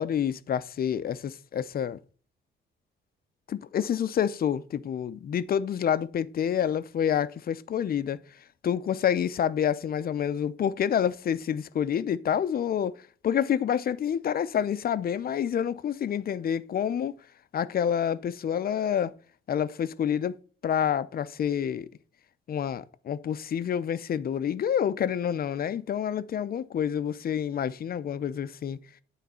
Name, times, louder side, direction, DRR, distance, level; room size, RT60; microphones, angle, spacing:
voice 1, 0.0-2.0 3.5-8.2 8.6-13.0 13.2-17.1 17.5-19.1 19.5-20.4 20.6-21.9 22.5-28.8, left 9 dB, 50° left, 0.6 m, -28 dB
9.4 x 4.0 x 5.5 m
cardioid pair, 90°, 20 cm